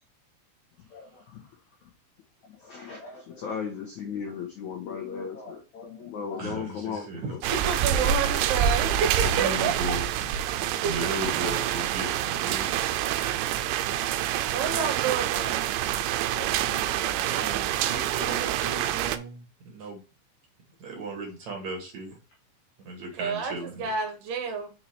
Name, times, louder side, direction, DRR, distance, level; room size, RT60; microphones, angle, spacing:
voice 1, 0.9-1.4 2.6-7.4 7.9-8.1 16.1-17.2 18.2-18.3, left 6 dB, 85° left, 1.6 m, -37 dB
voice 2, 6.4-7.7 9.4-12.8 17.3-20.0 20.8-22.1 22.8-23.9, right 2 dB, 50° right, 2.6 m, -36 dB
sound 1, 7.4-19.2, right 11 dB, 90° right, 2.9 m, -27 dB
voice 3, 7.5-9.7 10.8-11.0 14.4-15.6 23.2-24.7, right 6 dB, 75° right, 2.7 m, -29 dB
6.6 x 4.4 x 4.4 m
omnidirectional pair, 5.0 m